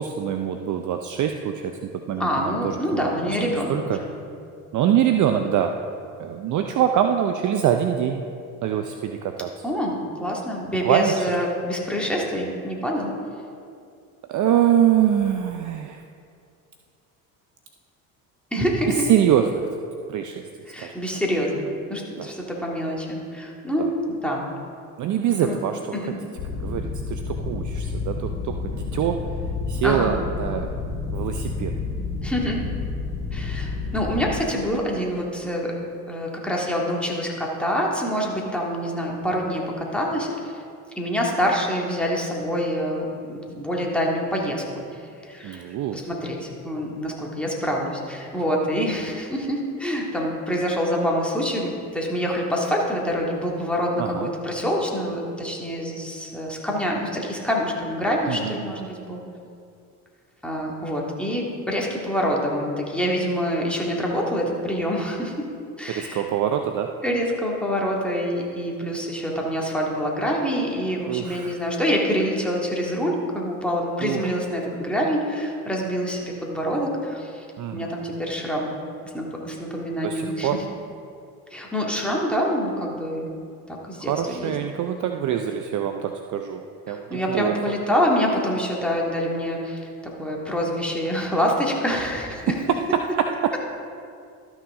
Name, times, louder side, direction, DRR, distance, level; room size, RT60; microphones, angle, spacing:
voice 1, 0.0-4.0 4.7-5.8 6.2-8.2 8.6-9.5 10.8-11.3 14.3-16.0 18.6-19.7 20.1-20.4 20.8-21.0 22.2-22.3 23.8-23.9 25.0-26.0 26.6-29.2 29.7-30.7 31.1-31.7 45.4-46.0 54.0-54.3 58.3-58.6 65.9-66.9 71.1-71.6 74.0-74.2 77.6-77.9 80.0-80.6 84.0-87.6 92.7-93.5, right 9 dB, 40° right, 6 dB, 0.6 m, -24 dB
voice 2, 2.2-4.1 9.6-13.1 18.5-19.1 20.7-21.6 21.9-23.9 24.2-24.5 25.4-25.6 25.9-26.1 29.8-30.1 32.2-32.6 33.3-35.7 36.1-40.6 41.0-59.2 60.4-65.5 65.8-66.3 67.0-77.5 77.7-78.7 79.1-80.5 81.5-83.3 83.7-84.5 86.9-89.9 90.2-92.5, equal, ahead, -3 dB, 2.0 m, -26 dB
sound 1, 26.4-34.4, left 4 dB, 65° left, 2.3 m, -30 dB
13.0 x 6.1 x 3.7 m, 2.4 s
hypercardioid pair, 65°, 45 cm